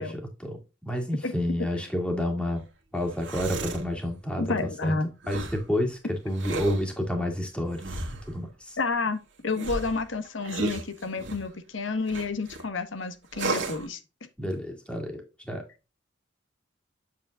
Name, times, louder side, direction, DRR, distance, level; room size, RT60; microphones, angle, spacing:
voice 1, 0.0-2.6 2.9-4.5 4.8-4.9 5.3-7.8 8.3-8.8 14.4-15.2 15.5-15.7, left 1 dB, 5° left, 2.0 m, -29 dB
sound 1, 3.0-3.9 5.2-5.7 6.3-6.9 7.8-8.4 9.5-11.5 12.1-12.6 13.3-13.9, right 3 dB, 70° right, 1.7 m, -34 dB
voice 2, 4.4-5.1 8.8-14.0, left 3 dB, 80° left, 1.3 m, -30 dB
7.5 x 7.4 x 2.4 m
head